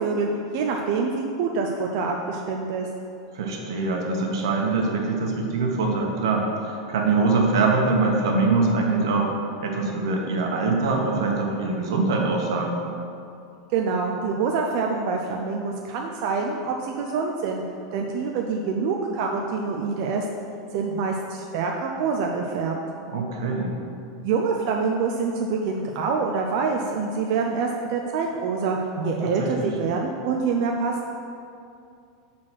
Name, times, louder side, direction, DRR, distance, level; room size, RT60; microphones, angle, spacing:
voice 1, 0.0-2.9 13.7-17.6 17.9-20.2 20.7-22.8 24.2-28.8 29.0-31.1, right 4 dB, 55° right, 1 dB, 0.6 m, -26 dB
voice 2, 3.3-9.3 9.6-12.8 23.1-23.8 29.0-29.7, right 3 dB, 85° right, 0 dB, 1.3 m, -23 dB
5.9 x 4.3 x 6.3 m, 2.5 s
supercardioid pair, 150°, 2 cm